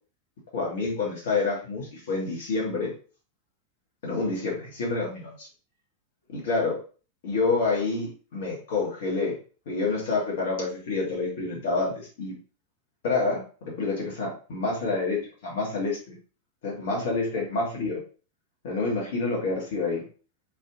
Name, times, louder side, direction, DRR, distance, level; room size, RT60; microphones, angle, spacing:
voice 1, 0.5-2.9 4.0-5.5 6.3-6.8 7.2-9.3 9.6-12.3 13.0-16.1 16.6-18.0 18.6-20.1, left 3 dB, 55° left, -3 dB, 1.7 m, -28 dB
4.3 x 4.2 x 2.5 m, 0.37 s
figure-of-eight pair, 90°, 0 cm